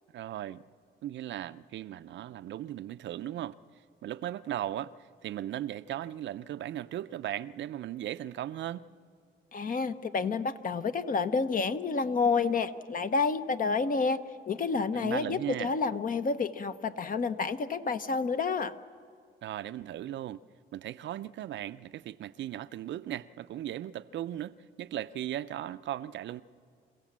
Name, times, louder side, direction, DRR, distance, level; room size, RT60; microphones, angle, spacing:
voice 1, 0.1-0.6 1.0-3.5 4.0-4.9 5.2-8.9 14.9-15.7 19.4-20.4 20.7-26.4, right 12 dB, 65° right, 0.5 m, -37 dB
voice 2, 9.5-14.2 14.5-18.7, left 4 dB, 45° left, 0.9 m, -29 dB
27.5 x 16.0 x 7.4 m
cardioid pair, 90°, 20 cm